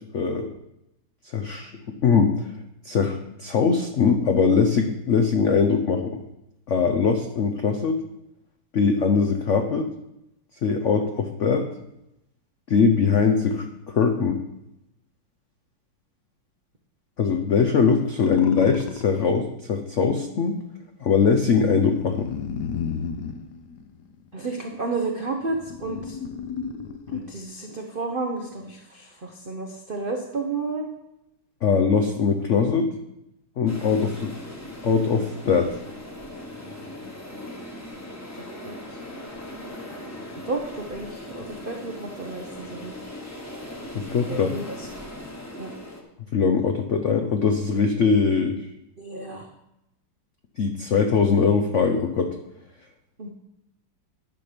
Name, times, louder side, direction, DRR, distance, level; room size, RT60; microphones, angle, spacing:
voice 1, 0.1-0.5 1.3-1.7 2.0-2.5 2.8-6.2 6.7-8.0 8.7-9.9 10.6-11.7 12.7-14.4 17.2-20.6 21.0-22.3 31.6-32.9 33.6-34.3 34.8-35.7 43.9-44.6 46.3-48.6 50.6-52.3, left 5 dB, 85° left, 5 dB, 0.6 m, -21 dB
sound 1, 18.2-19.2 21.6-24.3 25.0-27.5, left 6 dB, 65° left, 1.2 m, -33 dB
voice 2, 24.3-26.2 27.1-30.9 38.6-38.8 40.4-42.9 44.3-44.9 45.6-45.7 49.0-49.5 53.2-53.3, right 3 dB, 70° right, 2 dB, 0.5 m, -31 dB
sound 2, 33.7-46.0, left 1 dB, 10° left, 0.8 m, -39 dB
11.0 x 6.0 x 5.1 m, 0.86 s
omnidirectional pair, 2.3 m